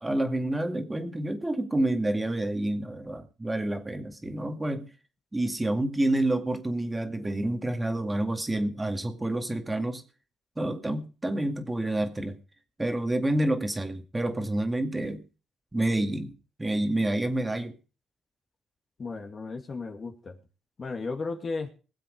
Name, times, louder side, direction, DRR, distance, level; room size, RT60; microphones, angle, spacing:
voice 1, 0.0-4.9 5.3-10.0 10.6-12.4 12.8-15.2 15.7-17.7, right 1 dB, 15° right, 6 dB, 2.1 m, -28 dB
voice 2, 19.0-20.4 20.8-21.7, left 4 dB, 40° left, 5 dB, 2.3 m, -34 dB
20.5 x 7.7 x 5.2 m, 0.35 s
cardioid pair, 90°, 0 cm